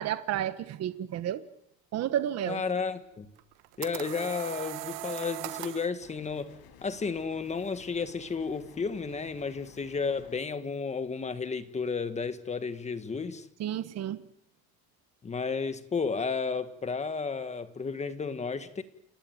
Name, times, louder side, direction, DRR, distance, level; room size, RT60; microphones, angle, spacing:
voice 1, 0.0-1.4 1.9-2.6 13.6-14.2, right 11 dB, 45° right, 1.3 m, -31 dB
voice 2, 2.5-3.3 3.8-6.5 6.8-13.5 15.2-18.8, left 5 dB, 20° left, 1.6 m, -32 dB
sound 1, 3.4-5.9, right 20 dB, 85° right, 1.3 m, -39 dB
sound 2, 6.0-10.4, left 8 dB, 85° left, 5.4 m, -54 dB
29.0 x 19.0 x 9.4 m
cardioid pair, 175°, 37 cm